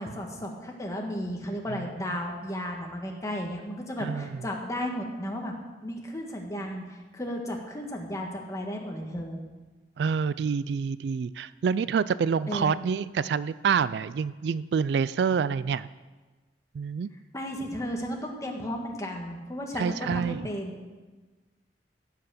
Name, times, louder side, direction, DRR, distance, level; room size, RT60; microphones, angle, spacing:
voice 1, 0.0-5.5 5.8-9.4 12.5-12.8 17.3-20.8, equal, 20° left, 1 dB, 1.6 m, -34 dB
voice 2, 4.0-4.3 10.0-15.9 16.7-17.1 19.8-20.4, right 6 dB, 65° right, 17 dB, 0.3 m, -27 dB
15.0 x 5.8 x 6.8 m, 1.3 s
head